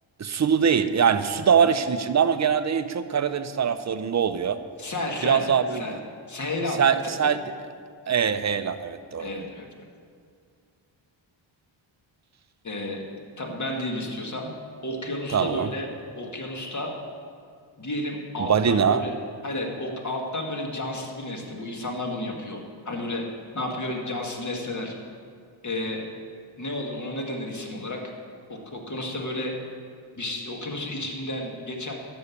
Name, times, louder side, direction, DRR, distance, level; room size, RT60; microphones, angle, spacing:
voice 1, 0.2-4.6 5.2-6.0 6.8-7.4 8.1-9.3 15.3-15.7 18.4-19.0, right 7 dB, 35° right, 11 dB, 0.6 m, -23 dB
voice 2, 4.8-5.5 5.7-6.0 6.3-6.8 9.2-9.7 12.6-13.0 13.4-14.5 14.8-15.9 16.2-16.9 17.8-19.1 19.4-22.6 22.9-23.2 23.5-24.9 25.6-26.0 26.6-28.0 28.5-29.5 30.2-31.9, left 1 dB, 35° left, 1 dB, 2.0 m, -31 dB
12.0 x 5.6 x 8.4 m, 2.1 s
cardioid pair, 95°, 47 cm